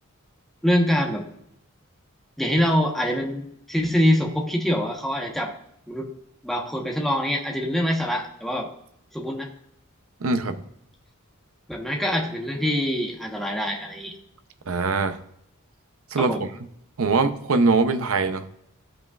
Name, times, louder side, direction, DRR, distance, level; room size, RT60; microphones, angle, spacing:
voice 1, 0.6-1.2 2.4-5.5 5.9-6.1 6.4-8.7 9.1-9.5 11.7-14.1 16.2-16.4, equal, ahead, 0 dB, 1.1 m, -24 dB
voice 2, 10.2-10.6 14.7-15.2 16.1-16.4 17.0-18.6, right 3 dB, 70° right, 9 dB, 0.7 m, -22 dB
14.5 x 5.5 x 2.4 m, 0.74 s
head